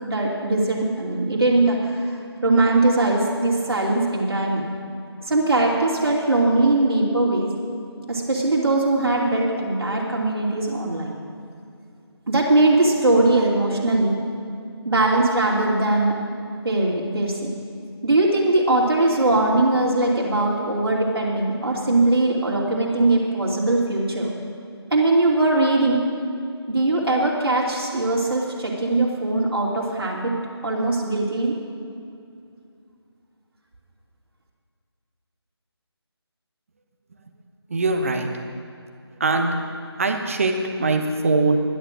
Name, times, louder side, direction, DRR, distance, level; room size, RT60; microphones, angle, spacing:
voice 1, 0.0-2.1 2.4-4.7 5.3-7.5 8.1-11.2 12.3-14.2 14.8-16.1 16.6-17.5 18.0-24.3 24.9-26.0 26.7-30.3 30.6-31.6, right 2 dB, 60° right, -3 dB, 2.9 m, -20 dB
voice 2, 37.7-38.3 39.2-39.5 40.0-41.6, right 3 dB, 30° right, 4 dB, 0.9 m, -21 dB
11.5 x 10.0 x 6.3 m, 2.5 s
figure-of-eight pair, 160°, 14 cm